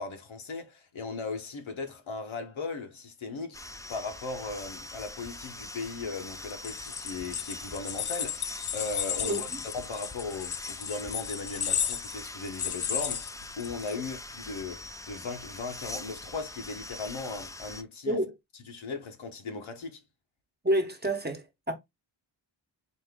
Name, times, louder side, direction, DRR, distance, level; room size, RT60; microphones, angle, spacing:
voice 1, 0.0-3.6 3.9-9.5 9.7-18.2 18.7-20.0, left 4 dB, 85° left, 1.1 m, -37 dB
sound 1, 3.5-17.8, left 2 dB, 10° left, 0.3 m, -43 dB
sound 2, 6.5-13.9, left 9 dB, 60° left, 0.6 m, -34 dB
voice 2, 9.2-9.6 18.0-18.3 20.6-21.7, right 1 dB, 20° right, 1.0 m, -29 dB
4.2 x 2.6 x 3.5 m
wide cardioid pair, 75°, 46 cm